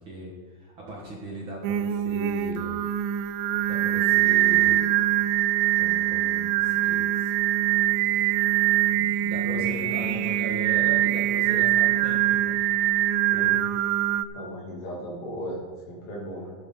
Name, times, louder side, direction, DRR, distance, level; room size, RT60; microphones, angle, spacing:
voice 1, 0.1-2.8 3.7-5.2 5.8-7.3 9.0-12.6, right 1 dB, 45° right, -3 dB, 2.0 m, -39 dB
Singing, 1.6-14.2, right 13 dB, 90° right, 2.3 m, -23 dB
voice 2, 9.4-10.3 11.5-11.6 13.3-13.6 14.3-16.5, equal, 85° left, -5 dB, 4.4 m, -36 dB
12.5 x 12.0 x 3.8 m, 1.5 s
omnidirectional pair, 3.9 m